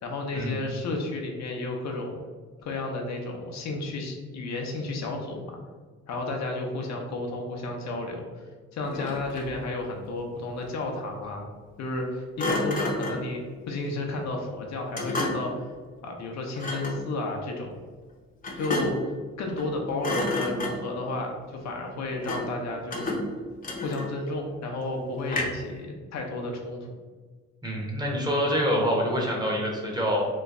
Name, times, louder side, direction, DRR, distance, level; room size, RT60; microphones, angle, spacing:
voice 1, 0.0-2.2 2.6-5.6 6.1-8.4 8.7-11.5 11.8-15.5 16.0-17.8 18.5-19.0 19.4-23.1 23.8-26.9, left 2 dB, 65° left, 1 dB, 0.7 m, -32 dB
Thump thud, 8.8-9.6 12.4-13.3 14.9-15.6 16.6-17.0 18.4-19.1 19.5-19.7 20.0-21.0 22.2-22.6 22.9-24.3 25.3-25.7, left 2 dB, 30° left, 0.7 m, -31 dB
voice 2, 27.6-30.3, equal, 15° right, -2 dB, 0.8 m, -26 dB
3.1 x 2.2 x 3.6 m, 1.4 s
cardioid pair, 90°, 30 cm